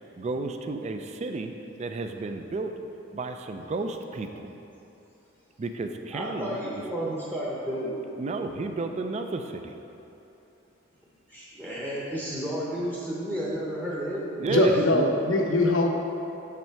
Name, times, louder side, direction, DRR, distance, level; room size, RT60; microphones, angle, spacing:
voice 1, 0.2-1.5 1.8-2.7 3.1-4.5 5.6-6.6 8.2-9.7 14.4-15.0, right 3 dB, 35° right, 6 dB, 0.4 m, -32 dB
voice 2, 6.1-8.0 11.3-14.8, equal, 10° right, -7 dB, 0.8 m, -32 dB
voice 3, 14.5-15.9, left 2 dB, 75° left, 2 dB, 0.8 m, -22 dB
6.4 x 6.0 x 4.5 m, 2.9 s
head